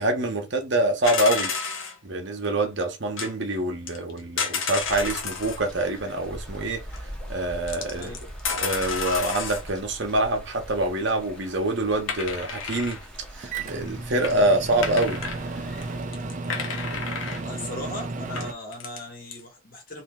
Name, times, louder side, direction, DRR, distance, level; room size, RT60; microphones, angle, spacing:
voice 1, 0.0-1.5 2.0-6.8 7.3-8.1 8.5-13.0 13.3-15.2, right 1 dB, 55° right, 0.9 m, -25 dB
sound 1, 1.0-2.0 3.2-3.3 3.9-5.6 6.9-7.0 7.7-9.7 12.1-13.1 13.8-13.9 14.2-14.3 14.8-15.4 15.8-15.9 16.1-17.4 18.0-18.1 18.4-19.0 19.3-19.4, left 5 dB, 70° left, 0.9 m, -31 dB
sound 2, 4.8-16.0, equal, 5° left, 0.8 m, -42 dB
Microwave oven, 13.4-18.5, right 3 dB, 35° right, 0.5 m, -33 dB
voice 2, 17.4-20.0, left 1 dB, 40° left, 1.4 m, -38 dB
3.3 x 2.7 x 3.6 m
head